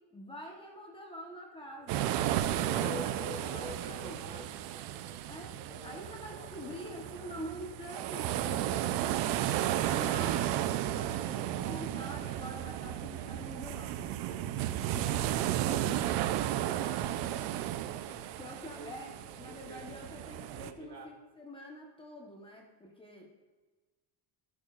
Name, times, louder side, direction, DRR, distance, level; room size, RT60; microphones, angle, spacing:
voice 1, 0.1-4.2 5.3-5.6 5.8-9.0 9.8-14.4 14.9-16.0 18.4-19.1 19.4-23.3, equal, 10° left, -1 dB, 1.1 m, -46 dB
sound 1, 1.8-5.9, left 3 dB, 65° left, 2.3 m, -45 dB
sound 2, 1.9-20.7, right 12 dB, 75° right, 0.6 m, -34 dB
voice 2, 3.6-4.4 5.4-6.5 6.8-7.4 7.9-8.5 11.3-12.4 13.1-13.4 16.6-20.0 20.4-21.1, right 3 dB, 60° right, 0 dB, 2.1 m, -51 dB
13.0 x 8.5 x 2.4 m, 1.3 s
cardioid pair, 155°, 42 cm